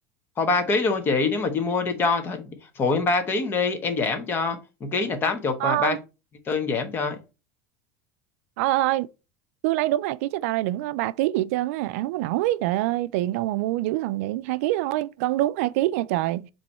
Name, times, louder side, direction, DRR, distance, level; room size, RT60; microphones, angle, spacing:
voice 1, 0.4-6.0 6.5-7.2, left 4 dB, 30° left, 1.2 m, -25 dB
voice 2, 5.6-6.0 8.6-9.1 9.6-16.5, right 16 dB, 80° right, 0.4 m, -25 dB
7.5 x 3.1 x 4.2 m
cardioid pair, 150°, 8 cm